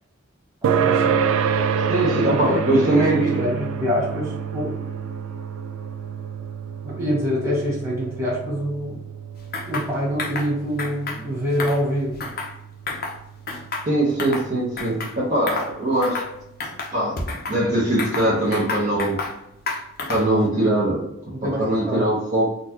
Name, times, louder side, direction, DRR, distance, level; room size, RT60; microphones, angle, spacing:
sound 1, 0.6-15.5, right 7 dB, 85° right, 0.3 m, -28 dB
voice 1, 0.8-1.2 2.2-4.7 6.8-9.0 9.7-12.2 21.3-22.1, equal, 15° right, -6 dB, 1.4 m, -26 dB
voice 2, 1.9-3.5 13.8-16.2 16.9-17.2 17.5-19.2 20.1-21.1 21.4-22.5, right 1 dB, 40° right, -7 dB, 0.8 m, -21 dB
sound 2, 9.5-9.9 10.2-10.5 10.8-11.2 11.5-12.6 12.9-13.2 13.5-14.5 14.8-15.1 15.5-15.7 16.0-16.3 16.6-17.6 18.0-19.4 19.7-20.4, left 3 dB, 50° left, 0.6 m, -30 dB
3.9 x 2.3 x 2.8 m, 0.83 s
head